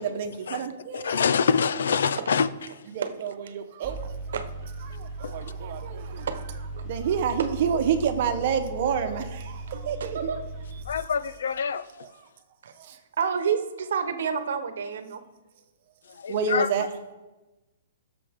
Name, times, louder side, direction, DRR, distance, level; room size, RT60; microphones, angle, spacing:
voice 1, 0.0-1.2 2.9-4.1 4.9-6.3 6.8-10.2 11.9-12.0 12.8-13.0 16.3-16.9, right 7 dB, 40° right, 1.1 m, -29 dB
voice 2, 0.9-2.8 5.2-5.3 10.9-11.9 16.1-16.7, left 6 dB, 75° left, 0.6 m, -26 dB
Mechanical fan, 3.8-10.8, right 2 dB, ahead, 3.4 m, -37 dB
voice 3, 9.7-10.4 12.6-12.7 13.2-15.2, right 6 dB, 65° right, 1.1 m, -29 dB
16.5 x 6.9 x 3.7 m
hypercardioid pair, 170°, 0 cm